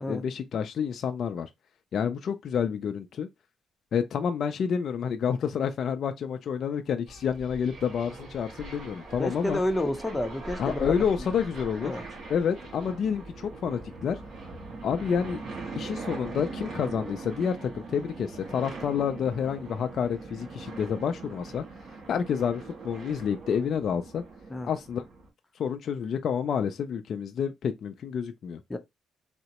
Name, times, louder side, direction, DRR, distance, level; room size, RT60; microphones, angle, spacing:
voice 1, 0.1-1.5 1.9-3.3 3.9-9.6 10.6-11.9 12.3-14.2 14.8-15.4 15.7-21.6 22.1-24.2 24.6-25.0 25.6-28.6, left 7 dB, 60° left, 0.3 m, -29 dB
sound 1, 7.1-25.3, right 3 dB, 60° right, 1.8 m, -41 dB
voice 2, 9.2-10.9 11.8-12.0 24.5-24.7 28.7-28.8, left 1 dB, 15° left, 0.7 m, -29 dB
3.6 x 2.0 x 2.9 m
cardioid pair, 90°, 0 cm